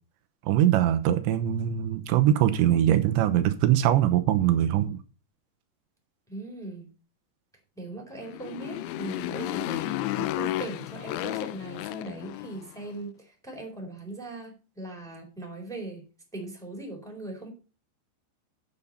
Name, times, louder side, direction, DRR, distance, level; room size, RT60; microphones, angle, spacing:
voice 1, 0.5-5.0, right 11 dB, 85° right, 10 dB, 3.1 m, -22 dB
voice 2, 6.3-6.9 7.8-16.0 16.3-17.5, right 2 dB, ahead, 0 dB, 3.5 m, -39 dB
Motorcycle, 8.2-12.8, left 15 dB, 85° left, 3.0 m, -32 dB
8.7 x 8.2 x 5.5 m, 0.35 s
omnidirectional pair, 5.3 m